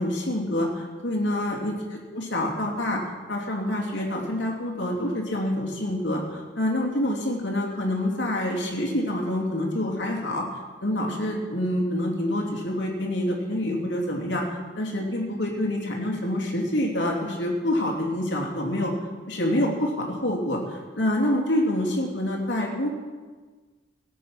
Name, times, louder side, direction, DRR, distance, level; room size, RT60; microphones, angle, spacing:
voice 1, 0.0-1.7 2.1-3.0 3.3-10.4 10.8-14.4 14.8-18.9 19.3-22.9, left 1 dB, 70° left, -1 dB, 2.8 m, -26 dB
17.0 x 8.4 x 5.9 m, 1.4 s
head